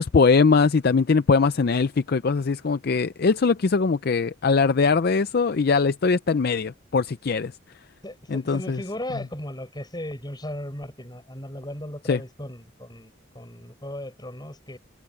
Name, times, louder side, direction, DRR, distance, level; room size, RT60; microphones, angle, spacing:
voice 1, 0.0-7.5 8.3-8.8 12.1-12.2, left 4 dB, 50° left, 0.5 m, -21 dB
voice 2, 8.0-14.8, left 1 dB, 20° left, 7.3 m, -36 dB
open air
head